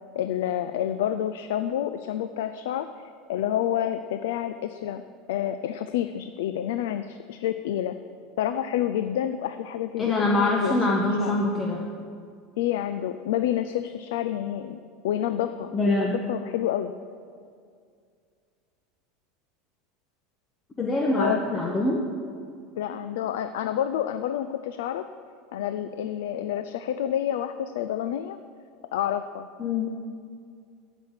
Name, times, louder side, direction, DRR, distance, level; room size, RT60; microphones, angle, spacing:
voice 1, 0.1-2.9 3.3-5.0 5.3-8.0 8.4-10.8 11.2-11.4 12.6-16.9 21.2-21.4 22.8-25.0 25.5-28.4 28.9-29.5, left 11 dB, 85° left, 10 dB, 0.5 m, -28 dB
voice 2, 10.0-11.9 15.7-16.2 20.8-22.0 29.6-29.9, left 2 dB, 20° left, -1 dB, 1.2 m, -24 dB
14.0 x 6.2 x 7.5 m, 2.2 s
supercardioid pair, 135°, 0 cm